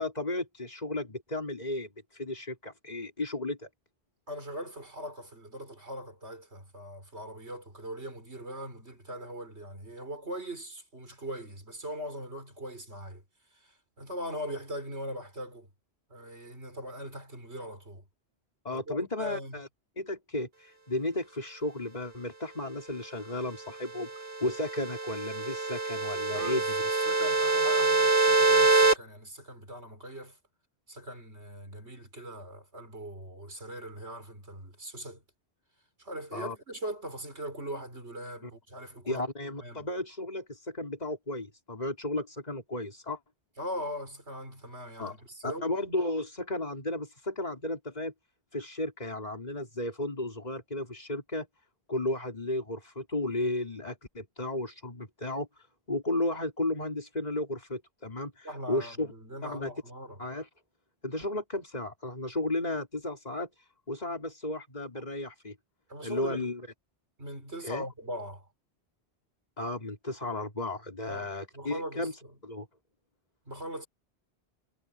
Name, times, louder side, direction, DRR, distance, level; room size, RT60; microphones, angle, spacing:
voice 1, 0.0-3.7 18.6-19.7 20.0-26.8 36.3-36.6 38.4-38.5 39.1-43.2 45.0-45.2 45.4-48.1 48.5-51.5 51.9-59.1 59.4-59.7 60.2-60.5 61.0-65.6 66.0-66.6 67.6-67.9 69.6-72.1 72.4-72.7, left 2 dB, 40° left, 3.8 m, -34 dB
voice 2, 4.3-13.2 13.5-15.7 16.1-18.0 18.7-19.6 26.3-30.4 30.9-35.2 36.0-39.3 39.6-39.9 43.6-45.7 58.4-60.2 65.9-66.4 67.2-68.5 71.1-72.1 73.5-73.9, equal, 85° right, 6.1 m, -40 dB
sound 1, 24.0-28.9, right 3 dB, 60° right, 1.5 m, -25 dB
omnidirectional pair, 1.1 m